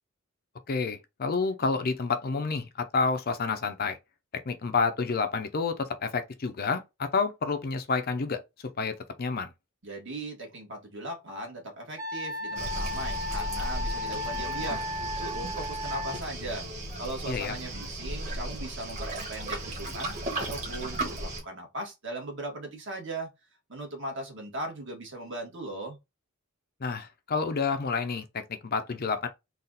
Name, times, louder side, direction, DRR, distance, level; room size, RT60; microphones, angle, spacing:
voice 1, 0.7-4.0 4.5-8.4 8.8-9.5 17.3-17.5 26.8-28.2 28.6-29.3, left 4 dB, 45° left, 0.6 m, -29 dB
voice 2, 9.8-16.7 17.0-23.3 23.7-26.0, right 1 dB, 55° right, 1.7 m, -38 dB
Wind instrument woodwind instrument, 12.0-16.2, left 1 dB, 15° right, 0.7 m, -35 dB
Waves surf, 12.6-21.4, right 1 dB, 30° right, 1.4 m, -35 dB
4.0 x 2.4 x 3.9 m
head